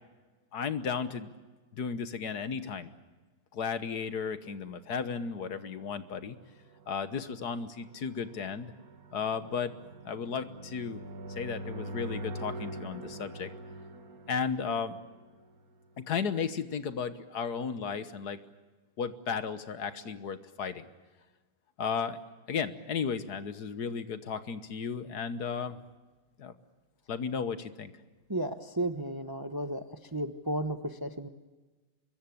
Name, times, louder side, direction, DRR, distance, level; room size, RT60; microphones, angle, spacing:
voice 1, 0.5-1.3 1.7-2.9 3.5-6.4 6.9-8.7 9.1-9.7 10.0-11.0 11.3-13.5 14.3-15.0 16.0-18.4 19.0-20.9 21.8-22.2 22.5-25.8 26.4-26.5 27.1-27.9, left 6 dB, 65° left, 12 dB, 1.7 m, -34 dB
sound 1, 5.2-16.0, right 1 dB, 55° right, 1.8 m, -44 dB
voice 2, 28.3-31.3, right 1 dB, 15° right, 9 dB, 0.9 m, -34 dB
25.5 x 22.5 x 8.5 m, 1.3 s
omnidirectional pair, 1.9 m